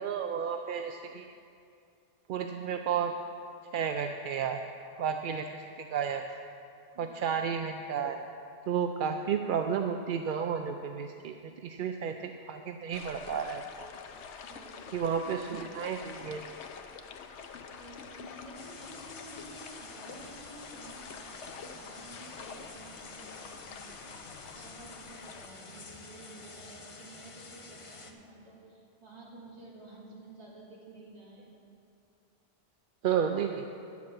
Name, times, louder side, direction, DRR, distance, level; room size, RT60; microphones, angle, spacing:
voice 1, 0.0-1.3 2.3-3.1 3.7-4.7 5.0-6.2 7.0-8.2 8.7-13.9 14.9-16.4 33.0-33.7, right 7 dB, 60° right, 5 dB, 0.6 m, -32 dB
sound 1, 12.9-25.5, left 6 dB, 90° left, 1.0 m, -47 dB
voice 2, 14.4-15.0 17.7-31.5, right 2 dB, 35° right, -6 dB, 2.7 m, -51 dB
sound 2, 18.5-28.1, left 3 dB, 35° left, 0.7 m, -49 dB
11.0 x 7.1 x 7.7 m, 2.5 s
omnidirectional pair, 1.2 m